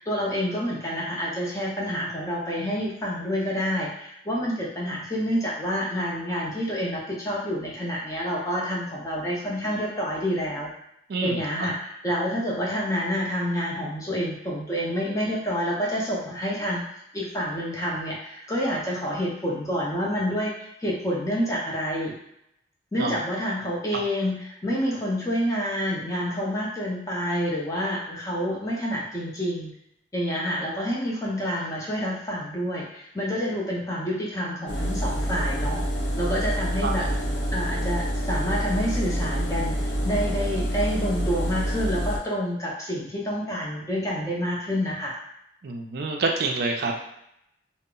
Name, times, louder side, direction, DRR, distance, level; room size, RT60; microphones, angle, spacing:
voice 1, 0.0-10.7 11.2-16.8 17.1-22.1 22.9-29.7 30.1-35.8 36.2-37.1 37.5-39.7 40.0-45.1, equal, 20° left, -4 dB, 0.6 m, -28 dB
voice 2, 11.1-11.4 23.0-23.2 36.8-36.9 45.6-46.9, right 3 dB, 60° right, 2 dB, 0.4 m, -27 dB
Engine, 34.7-42.2, equal, 80° left, 0.6 m, -27 dB
2.0 x 2.0 x 3.6 m, 0.78 s
head